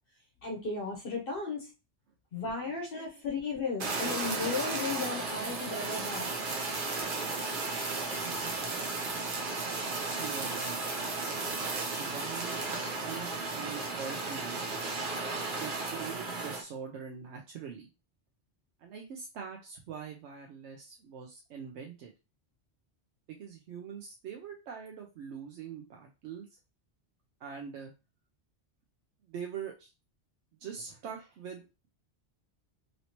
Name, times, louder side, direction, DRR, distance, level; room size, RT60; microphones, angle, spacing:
voice 1, 0.4-1.7 2.3-6.3, left 4 dB, 60° left, 1 dB, 0.9 m, -35 dB
voice 2, 2.6-3.2 8.2-8.5 10.0-11.1 12.0-12.7 13.1-14.8 15.5-17.9 18.8-22.1 23.3-26.6 27.4-27.9 29.3-29.9 30.6-31.6, right 7 dB, 80° right, 1 dB, 0.9 m, -43 dB
Fire, 3.8-16.6, right 3 dB, 50° right, 0.8 m, -34 dB
3.1 x 2.8 x 2.8 m, 0.29 s
omnidirectional pair, 1.2 m